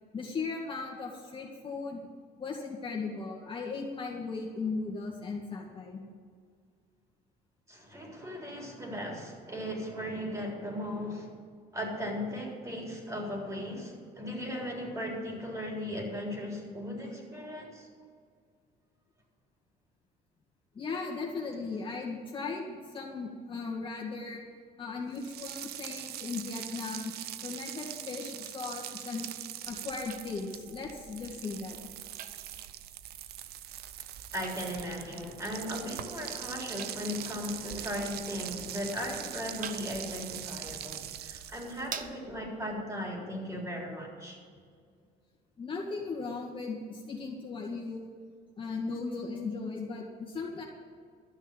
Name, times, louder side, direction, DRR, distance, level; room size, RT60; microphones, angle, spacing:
voice 1, 0.1-2.1 2.4-6.0 20.7-24.5 24.8-27.2 27.4-29.3 29.7-31.8 45.6-48.1 48.6-50.6, left 4 dB, 30° left, -2 dB, 2.0 m, -37 dB
voice 2, 7.7-11.3 11.7-17.9 34.3-44.4, equal, 20° right, -1 dB, 3.8 m, -37 dB
sound 1, 25.1-42.0, right 12 dB, 70° right, 0.6 m, -42 dB
sound 2, 29.7-42.7, right 7 dB, 55° right, 0.9 m, -49 dB
12.5 x 6.3 x 9.2 m, 2.1 s
cardioid pair, 110°, 17 cm